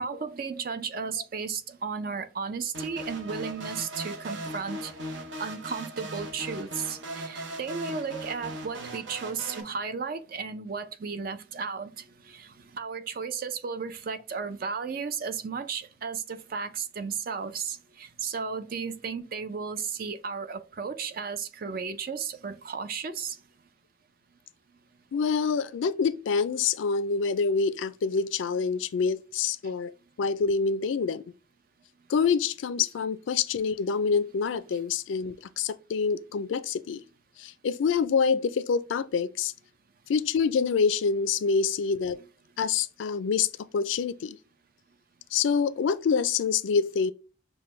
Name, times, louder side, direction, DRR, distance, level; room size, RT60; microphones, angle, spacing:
voice 1, 0.0-11.9 12.3-12.5 12.7-23.3, right 5 dB, 50° right, 0.4 m, -34 dB
sound 1, 2.7-9.6, right 1 dB, 75° right, 0.8 m, -38 dB
voice 2, 25.1-29.9 30.2-31.2 32.1-37.0 37.4-39.5 40.1-42.2 42.6-44.4 45.3-47.1, left 5 dB, 85° left, 0.4 m, -26 dB
5.9 x 2.2 x 3.1 m
head